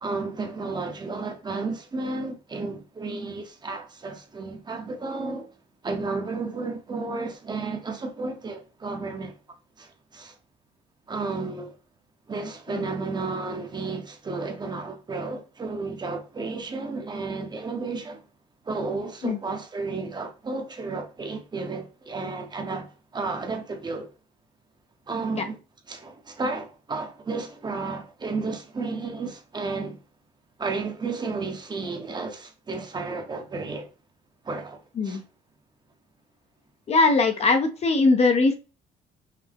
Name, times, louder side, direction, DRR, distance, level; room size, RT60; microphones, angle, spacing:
voice 1, 0.0-5.5 5.8-9.4 9.8-10.3 11.1-11.7 12.3-18.2 18.6-24.1 25.1-25.6 25.9-30.0 30.6-33.9 34.4-34.8 35.0-35.2, right 3 dB, 25° right, 0.8 m, -32 dB
voice 2, 36.9-38.6, left 3 dB, 40° left, 0.6 m, -20 dB
5.7 x 2.0 x 3.4 m
cardioid pair, 110°, 17 cm